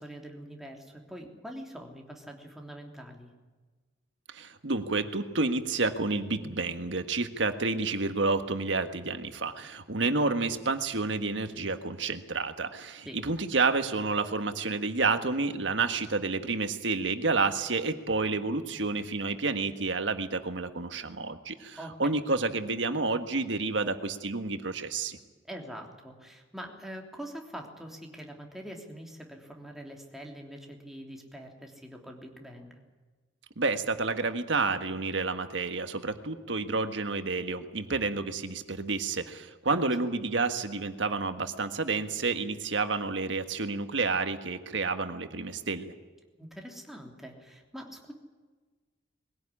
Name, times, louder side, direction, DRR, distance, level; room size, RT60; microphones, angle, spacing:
voice 1, 0.0-3.3 13.0-13.2 21.8-22.1 25.5-32.8 39.7-39.9 46.4-48.1, equal, ahead, 1 dB, 3.2 m, -44 dB
voice 2, 4.3-25.2 33.6-45.9, right 3 dB, 85° right, 8 dB, 1.6 m, -30 dB
21.5 x 16.5 x 9.9 m, 1.3 s
head